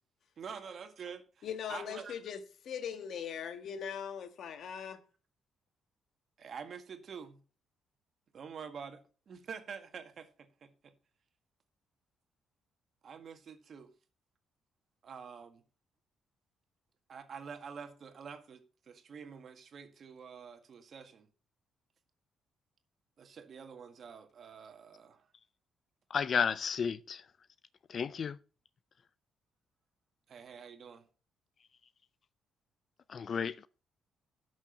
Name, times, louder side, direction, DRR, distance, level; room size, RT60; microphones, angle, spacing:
voice 1, 0.4-2.1 6.4-7.4 8.3-10.9 13.0-13.9 15.0-15.6 17.1-21.3 23.2-25.3 30.3-31.1, right 6 dB, 55° right, 1.8 m, -47 dB
voice 2, 1.4-5.0, left 8 dB, 65° left, 1.4 m, -40 dB
voice 3, 26.1-27.2 27.9-28.4 33.1-33.7, left 6 dB, 50° left, 0.4 m, -32 dB
11.5 x 6.3 x 5.9 m
cardioid pair, 90°, 0 cm